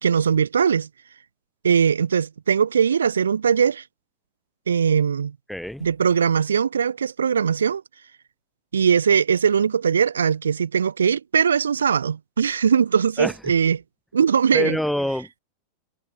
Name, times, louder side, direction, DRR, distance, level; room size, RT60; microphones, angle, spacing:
voice 1, 0.0-0.9 1.6-3.8 4.7-5.3 5.8-7.8 8.7-13.8 14.1-14.8, right 7 dB, 70° right, 0.8 m, -20 dB
voice 2, 5.5-5.9 13.2-13.3 14.5-15.4, left 1 dB, ahead, 1.6 m, -25 dB
figure-of-eight pair, 90°, 0 cm